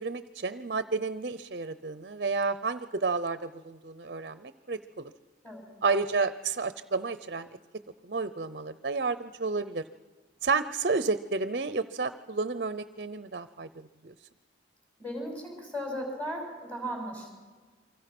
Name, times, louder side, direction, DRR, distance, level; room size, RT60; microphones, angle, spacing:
voice 1, 0.0-5.1 5.8-7.6 8.0-9.8 10.4-14.1, right 4 dB, 50° right, 13 dB, 0.7 m, -31 dB
voice 2, 15.0-17.3, equal, 10° left, 1 dB, 6.3 m, -36 dB
29.0 x 24.5 x 6.1 m, 1.4 s
head